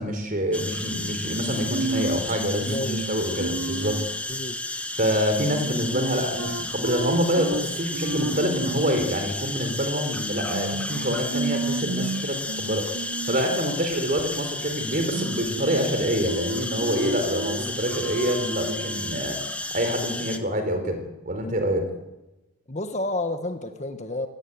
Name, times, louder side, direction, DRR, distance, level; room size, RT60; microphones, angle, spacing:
voice 1, 0.0-4.0 5.0-12.9 13.3-21.9, equal, 40° right, 7 dB, 4.3 m, -26 dB
sound 1, 0.5-20.4, left 2 dB, 5° left, 1.4 m, -33 dB
sound 2, 0.9-4.2 5.4-9.1 10.5-13.6 14.9-15.9 16.2-19.2, right 3 dB, 70° right, 0.7 m, -32 dB
voice 2, 2.6-3.1 4.3-4.6 22.7-24.3, left 2 dB, 35° left, 7 dB, 1.6 m, -30 dB
22.5 x 17.5 x 9.8 m, 1.0 s
head